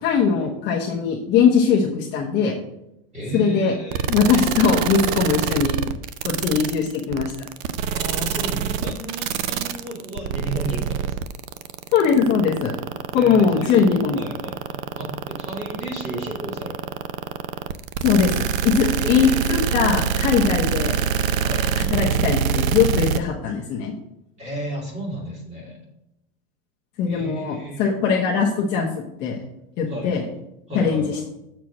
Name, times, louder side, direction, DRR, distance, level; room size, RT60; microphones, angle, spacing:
voice 1, 0.0-2.5 3.3-3.7 4.1-5.8 6.2-7.3 11.9-12.7 13.1-14.2 18.0-18.3 18.6-20.9 21.7-23.9 27.0-29.4 29.8-30.2 30.7-31.0, left 6 dB, 25° left, -3 dB, 0.8 m, -20 dB
voice 2, 3.1-4.1 7.9-11.1 13.1-16.9 19.0-19.6 21.4-21.7 24.4-25.8 27.1-27.9 29.9-30.1 30.7-31.2, equal, 15° right, -3 dB, 2.3 m, -33 dB
sound 1, 3.9-23.2, right 8 dB, 80° right, 0.7 m, -24 dB
7.2 x 4.6 x 6.3 m, 0.85 s
supercardioid pair, 170°, 40 cm